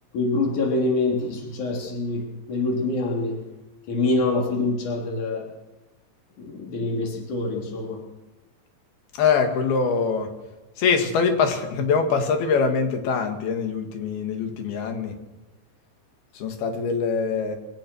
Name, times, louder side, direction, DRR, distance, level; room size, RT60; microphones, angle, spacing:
voice 1, 0.1-2.2 2.5-3.4 3.9-5.5 6.4-8.0, left 2 dB, 55° left, 1 dB, 4.8 m, -25 dB
voice 2, 9.2-10.3 10.8-15.2 16.4-17.6, left 5 dB, 80° left, 5 dB, 4.1 m, -23 dB
24.0 x 17.0 x 6.4 m, 1.0 s
omnidirectional pair, 4.4 m